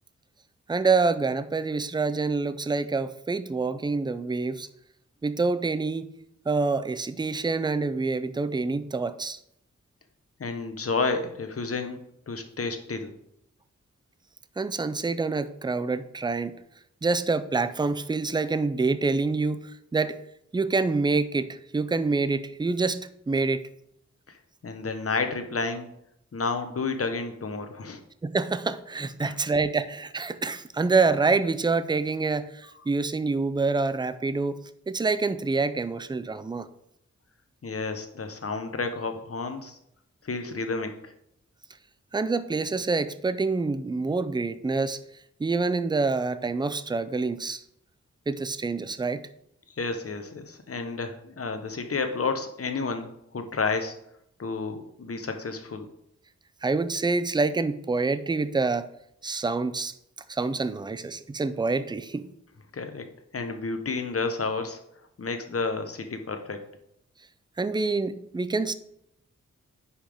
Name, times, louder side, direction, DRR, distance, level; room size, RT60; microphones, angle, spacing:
voice 1, 0.7-4.7 5.2-6.1 6.5-9.4 14.6-16.6 17.0-19.6 19.9-20.2 20.5-23.6 28.2-34.6 34.9-36.7 42.1-45.0 45.4-47.6 48.3-49.2 56.6-58.9 59.2-59.9 60.3-62.2 67.6-68.7, right 3 dB, 15° right, 14 dB, 0.4 m, -26 dB
voice 2, 10.4-12.0 12.3-13.1 24.3-24.4 24.6-25.9 26.3-28.0 29.2-29.3 37.6-39.8 40.2-41.1 49.8-53.9 54.4-55.9 62.7-63.0 63.3-64.8 65.2-66.6, left 4 dB, 50° left, 6 dB, 1.0 m, -31 dB
9.6 x 5.6 x 3.5 m, 0.75 s
wide cardioid pair, 90°, 29 cm